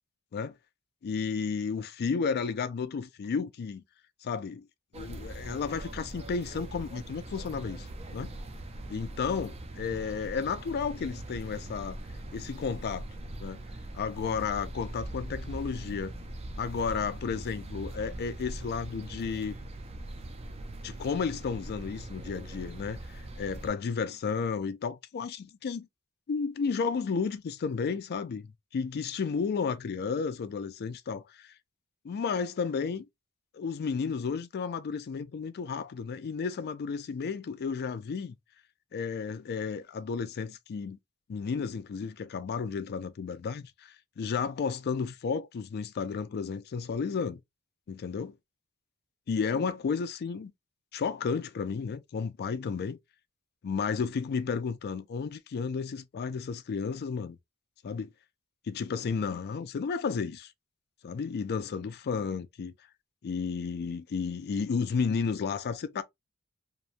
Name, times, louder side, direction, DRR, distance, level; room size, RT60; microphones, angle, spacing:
voice 1, 1.0-3.8 4.2-4.7 4.9-8.3 8.9-12.0 12.3-13.0 13.4-13.6 13.9-16.1 16.6-19.6 20.8-25.9 26.3-31.5 32.0-33.1 33.5-38.3 38.9-41.0 41.3-47.4 47.9-48.3 49.3-50.5 50.9-53.0 53.6-57.4 57.8-58.1 58.7-60.5 61.0-62.7 63.2-66.0, left 5 dB, 45° left, 0.3 m, -32 dB
sound 1, 4.9-23.7, right 1 dB, 30° right, 0.4 m, -41 dB
2.9 x 2.1 x 2.4 m
head